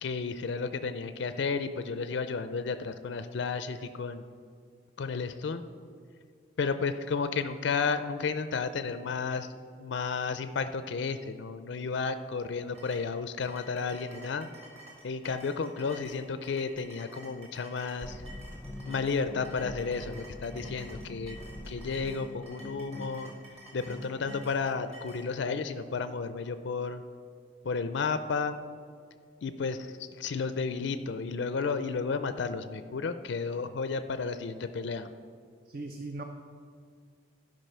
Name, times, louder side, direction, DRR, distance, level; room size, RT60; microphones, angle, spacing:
voice 1, 0.0-4.2 5.0-5.6 6.6-9.5 9.8-14.5 15.0-18.2 18.9-21.4 21.7-23.3 23.7-27.0 27.6-28.6 29.4-35.1, left 5 dB, 70° left, 10 dB, 0.4 m, -32 dB
sound 1, 12.7-25.3, right 1 dB, 30° right, 2.0 m, -51 dB
sound 2, 18.0-24.7, left 1 dB, 15° left, 0.5 m, -44 dB
voice 2, 35.7-36.2, right 2 dB, 50° right, 5 dB, 0.5 m, -38 dB
12.0 x 5.3 x 5.5 m, 2.2 s
head